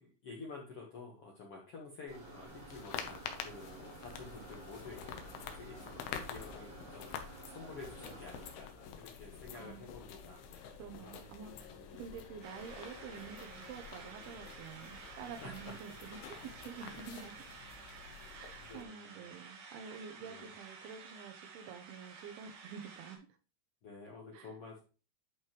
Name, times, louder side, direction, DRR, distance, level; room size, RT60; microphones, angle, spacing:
voice 1, 0.0-12.0 15.4-15.8 16.7-17.1 18.0-18.3 18.6-19.3 20.2-20.5 23.8-24.8, left 3 dB, 65° left, -1 dB, 1.4 m, -51 dB
sound 1, 2.1-8.5, right 4 dB, 35° right, 3.4 m, -53 dB
sound 2, 2.4-18.8, left 8 dB, 80° left, 2.9 m, -48 dB
voice 2, 9.5-9.9 10.8-17.4 18.3-23.3 24.3-24.5, right 7 dB, 80° right, 7 dB, 2.7 m, -49 dB
sound 3, 12.4-23.2, right 5 dB, 60° right, 2.9 m, -52 dB
11.0 x 4.9 x 3.0 m, 0.34 s
omnidirectional pair, 4.6 m